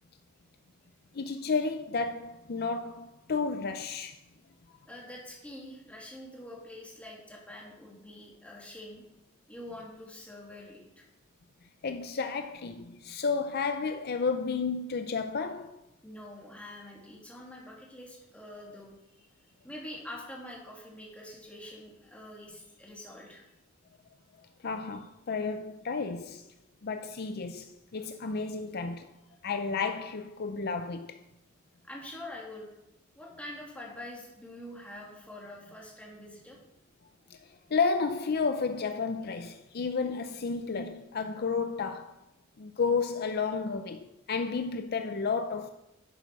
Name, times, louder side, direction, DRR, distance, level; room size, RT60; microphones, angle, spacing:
voice 1, 1.1-4.2 11.8-15.8 24.6-26.5 26.8-29.1 29.4-31.2 37.3-42.2 42.6-45.7, left 4 dB, 50° left, 0.5 m, -32 dB
voice 2, 4.9-9.0 9.5-11.0 16.0-23.4 31.8-32.7 33.1-36.6, left 1 dB, 5° left, 2.5 m, -45 dB
11.0 x 8.2 x 4.7 m
head